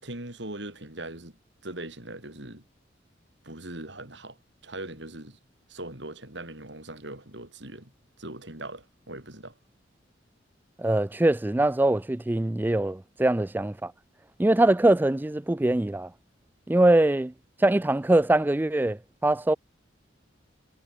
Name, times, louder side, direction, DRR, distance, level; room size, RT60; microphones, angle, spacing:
voice 1, 0.0-1.4 1.6-2.6 3.4-4.4 4.6-5.4 5.7-7.9 8.2-9.5, right 1 dB, 65° right, 5.9 m, -40 dB
voice 2, 10.8-13.9 14.4-16.1 16.7-17.3 17.6-19.5, right 1 dB, 10° right, 0.3 m, -23 dB
head